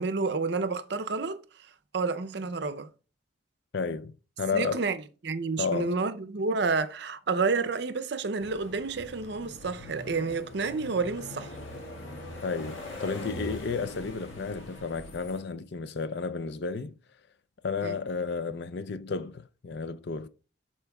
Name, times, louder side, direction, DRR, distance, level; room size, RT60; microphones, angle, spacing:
voice 1, 0.0-2.9 4.5-5.0 5.2-11.6 17.8-18.0, right 4 dB, 60° right, 0.6 m, -30 dB
voice 2, 3.7-4.8 5.6-6.0 12.4-17.0 17.6-20.3, left 5 dB, 60° left, 0.5 m, -32 dB
sound 1, 8.4-15.4, left 1 dB, 85° left, 1.8 m, -42 dB
11.5 x 4.4 x 2.3 m
head